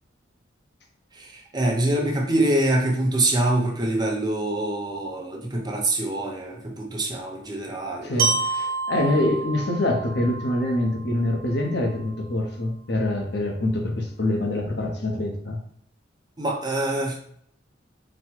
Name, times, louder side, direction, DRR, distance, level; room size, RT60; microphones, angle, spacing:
voice 1, 1.2-8.3 9.0-9.2 16.4-17.2, right 1 dB, 20° right, 0.7 m, -25 dB
voice 2, 8.0-15.6, left 1 dB, 60° left, 0.8 m, -25 dB
Glockenspiel, 8.2-12.2, right 4 dB, 55° right, 1.0 m, -29 dB
4.1 x 2.2 x 4.5 m
head